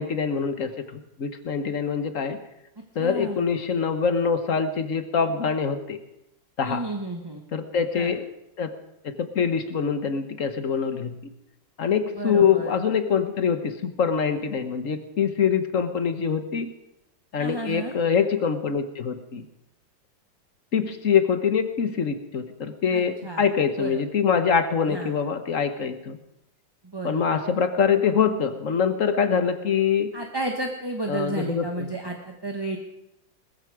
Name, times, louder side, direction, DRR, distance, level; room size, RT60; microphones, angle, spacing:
voice 1, 0.0-2.4 2.9-6.0 6.6-6.8 7.5-8.3 8.6-8.7 9.0-11.1 11.8-16.7 17.3-19.4 20.7-26.2 27.0-30.1 31.1-31.9, left 6 dB, 45° left, 9 dB, 1.4 m, -24 dB
voice 2, 3.0-3.4 6.6-7.4 7.9-8.1 12.2-12.7 17.4-18.0 22.9-23.5 23.8-24.0 24.9-25.1 26.8-27.2 30.1-32.8, right 2 dB, 15° right, 3 dB, 1.1 m, -32 dB
20.0 x 14.5 x 4.9 m, 0.86 s
omnidirectional pair, 2.0 m